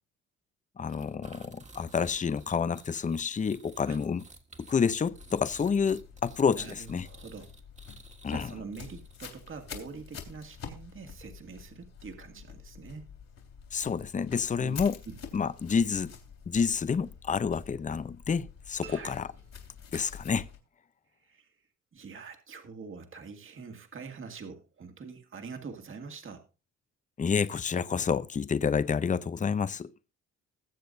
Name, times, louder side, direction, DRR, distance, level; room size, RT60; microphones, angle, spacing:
voice 1, 0.8-4.2 4.6-7.1 8.2-8.5 13.7-14.9 15.3-16.2 16.5-19.3 19.9-20.5 27.2-29.9, left 6 dB, 25° left, 0.6 m, -29 dB
sound 1, 0.9-9.4, right 3 dB, 25° right, 1.7 m, -54 dB
sound 2, 5.0-20.6, left 7 dB, 60° left, 3.1 m, -48 dB
voice 2, 6.5-7.5 8.3-13.1 14.6-15.2 18.8-19.2 21.2-26.5, right 5 dB, 45° right, 2.0 m, -45 dB
sound 3, 18.8-20.4, right 9 dB, 90° right, 1.7 m, -53 dB
20.5 x 7.6 x 2.7 m
cardioid pair, 90°, 30 cm